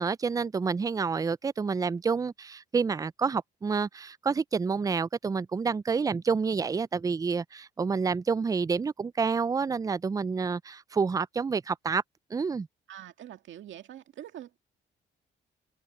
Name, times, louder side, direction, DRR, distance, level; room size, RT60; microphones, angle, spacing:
voice 1, 0.0-12.0 12.3-12.7, right 5 dB, 20° right, 0.4 m, -28 dB
voice 2, 12.9-14.6, right 11 dB, 70° right, 2.0 m, -44 dB
cardioid pair, 90°, 20 cm